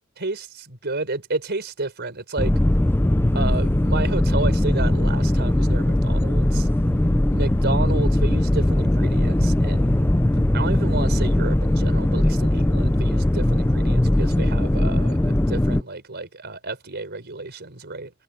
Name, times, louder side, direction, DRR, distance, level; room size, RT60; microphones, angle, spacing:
voice 1, 0.2-2.5 3.3-6.7 7.3-10.1 10.5-18.1, right 3 dB, 50° right, 4.6 m, -31 dB
sound 1, 2.4-15.8, left 1 dB, 10° left, 0.5 m, -20 dB
head